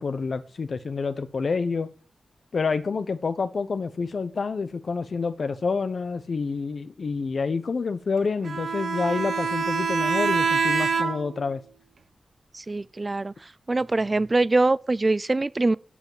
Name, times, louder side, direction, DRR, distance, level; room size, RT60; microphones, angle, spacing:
voice 1, 0.0-1.9 2.5-11.6, left 4 dB, 60° left, 1.0 m, -28 dB
Bowed string instrument, 8.4-11.5, right 5 dB, 80° right, 1.4 m, -25 dB
voice 2, 12.5-13.3 13.7-15.8, right 2 dB, 30° right, 0.5 m, -23 dB
9.8 x 5.9 x 7.5 m
wide cardioid pair, 85°, 0 cm